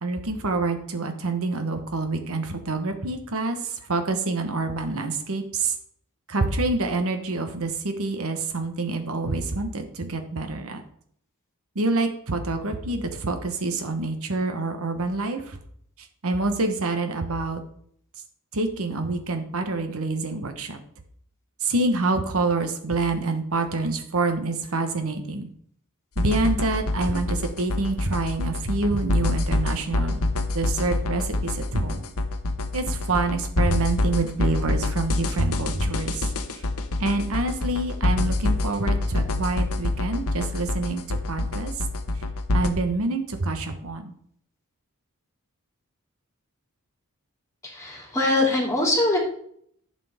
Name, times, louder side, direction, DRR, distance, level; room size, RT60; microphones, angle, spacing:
voice 1, 0.0-5.7 6.3-10.8 11.7-15.6 16.2-17.6 18.5-20.8 21.6-25.5 26.2-30.2 30.5-32.0 32.7-36.3 36.5-36.6 37.0-41.7 42.5-44.1, right 3 dB, 70° right, 7 dB, 1.1 m, -27 dB
sound 1, 26.2-42.7, left 2 dB, 70° left, 1.0 m, -25 dB
voice 2, 47.6-49.2, left 2 dB, 15° left, -2 dB, 2.9 m, -22 dB
11.0 x 6.8 x 3.5 m, 0.64 s
head